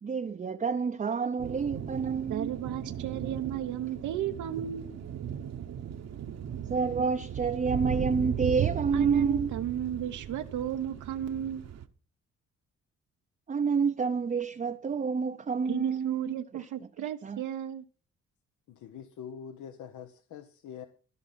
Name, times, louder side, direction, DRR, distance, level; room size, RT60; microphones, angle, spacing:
voice 1, 0.0-2.5 4.6-4.7 6.7-9.5 13.5-16.9 17.2-17.4, right 5 dB, 25° right, 0.6 m, -29 dB
sound 1, 1.4-11.9, right 9 dB, 60° right, 1.1 m, -36 dB
voice 2, 2.3-4.9 8.9-11.6 15.7-17.8, right 10 dB, 80° right, 0.9 m, -34 dB
voice 3, 18.7-20.9, left 8 dB, 75° left, 1.0 m, -44 dB
14.0 x 5.5 x 7.4 m
cardioid pair, 90°, 30 cm